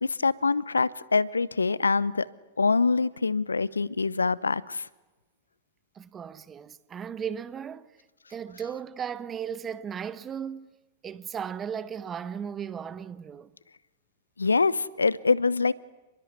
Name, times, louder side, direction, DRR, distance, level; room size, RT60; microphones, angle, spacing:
voice 1, 0.0-2.3 2.6-4.9 14.4-15.7, left 4 dB, 85° left, 0.8 m, -24 dB
voice 2, 5.9-7.9 8.3-10.7 11.0-13.5, right 8 dB, 25° right, 1.3 m, -36 dB
29.5 x 21.5 x 8.3 m
figure-of-eight pair, 100°, 0 cm